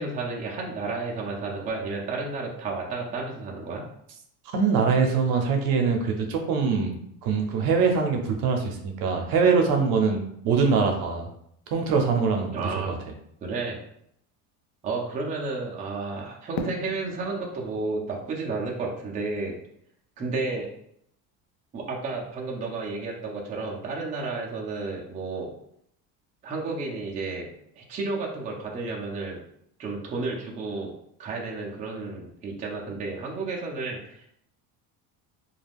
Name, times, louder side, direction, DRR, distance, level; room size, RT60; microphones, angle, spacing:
voice 1, 0.0-3.8 12.5-12.9 13.4-13.8 14.8-19.5 20.2-20.7 21.7-25.5 26.4-27.5 27.8-29.4 29.8-30.9 31.2-34.3, right 3 dB, 20° right, -3 dB, 0.4 m, -32 dB
voice 2, 4.5-7.0 7.2-11.3 11.7-12.9, right 5 dB, 65° right, 3 dB, 0.7 m, -23 dB
Fireworks, 16.5-19.6, left 3 dB, 65° left, 0.5 m, -40 dB
2.4 x 2.2 x 3.3 m, 0.72 s
cardioid pair, 145°, 40 cm